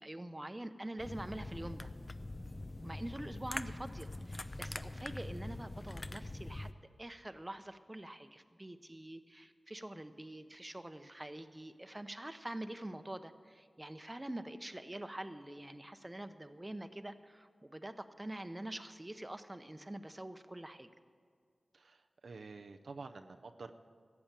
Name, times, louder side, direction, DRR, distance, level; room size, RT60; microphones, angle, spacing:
voice 1, 0.0-1.9 2.8-6.7 7.0-20.9, right 1 dB, 25° right, 10 dB, 0.8 m, -45 dB
sound 1, 1.0-6.7, left 2 dB, 35° left, 0.5 m, -43 dB
voice 2, 21.7-23.7, right 4 dB, 85° right, 6 dB, 0.6 m, -49 dB
14.0 x 8.6 x 7.5 m, 2.1 s
cardioid pair, 45°, 0 cm